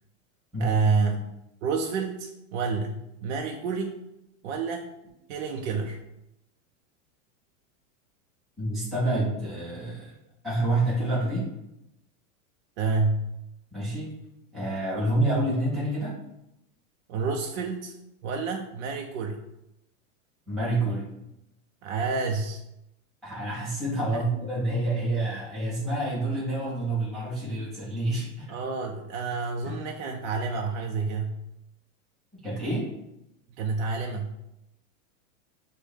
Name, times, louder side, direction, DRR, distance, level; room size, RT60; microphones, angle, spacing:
voice 1, 0.6-1.2 1.6-4.0 4.4-4.9 5.3-6.0 12.8-13.2 17.1-17.9 18.2-19.4 21.8-22.6 24.1-24.3 28.5-31.4 33.6-34.3, right 4 dB, 60° right, 1 dB, 0.5 m, -29 dB
voice 2, 8.6-10.1 10.4-11.5 13.7-14.1 14.5-16.1 20.5-21.1 23.2-28.4 29.6-29.9 32.3-32.9, right 1 dB, ahead, -11 dB, 0.4 m, -28 dB
6.1 x 2.2 x 3.5 m, 0.88 s
supercardioid pair, 175°, 41 cm